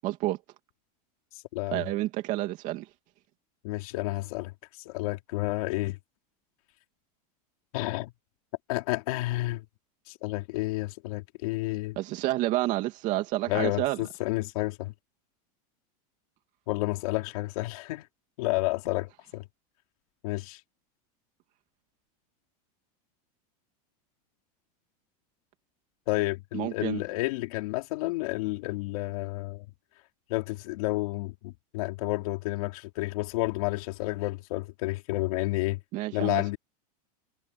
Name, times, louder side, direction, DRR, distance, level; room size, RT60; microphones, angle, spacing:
voice 1, 0.0-0.4 1.7-2.9 12.0-14.0 26.5-27.0 35.9-36.4, right 16 dB, 40° right, 2.6 m, -29 dB
voice 2, 1.3-1.8 3.6-6.0 7.7-8.1 8.7-9.6 10.1-12.0 13.5-14.9 16.7-18.1 18.4-19.4 20.2-20.6 26.1-29.7 30.3-35.8 36.1-36.6, left 20 dB, 65° left, 3.9 m, -30 dB
supercardioid pair, 165°, 20 cm